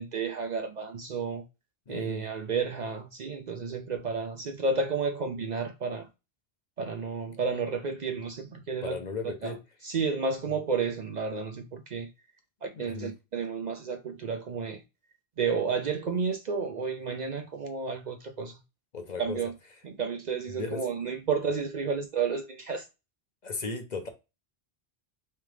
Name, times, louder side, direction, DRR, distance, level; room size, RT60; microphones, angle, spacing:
voice 1, 0.0-1.4 1.9-6.1 6.8-9.0 9.4-9.5 9.8-12.1 12.6-14.8 15.4-18.6 19.2-19.5 19.8-22.8, right 5 dB, 55° right, 0.6 m, -31 dB
voice 2, 1.9-2.2 8.8-9.6 12.7-13.1 18.9-19.4 20.5-20.9 23.4-24.1, left 4 dB, 50° left, 0.8 m, -36 dB
3.6 x 3.3 x 3.3 m
omnidirectional pair, 1.0 m